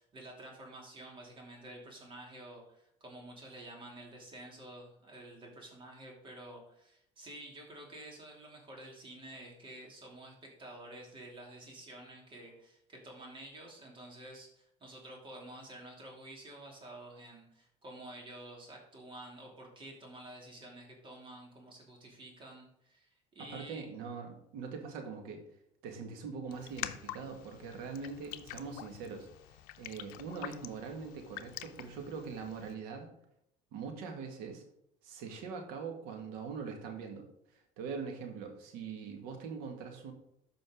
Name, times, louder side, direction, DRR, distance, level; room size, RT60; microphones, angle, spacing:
voice 1, 0.0-23.9, right 1 dB, 35° right, 0 dB, 2.8 m, -50 dB
voice 2, 23.4-25.4 25.8-33.1 33.7-34.6 35.0-40.1, right 5 dB, 85° right, 4 dB, 2.0 m, -42 dB
Raindrop, 26.5-32.7, left 14 dB, 80° left, 0.6 m, -46 dB
13.0 x 5.2 x 3.8 m, 0.76 s
cardioid pair, 125°, 15 cm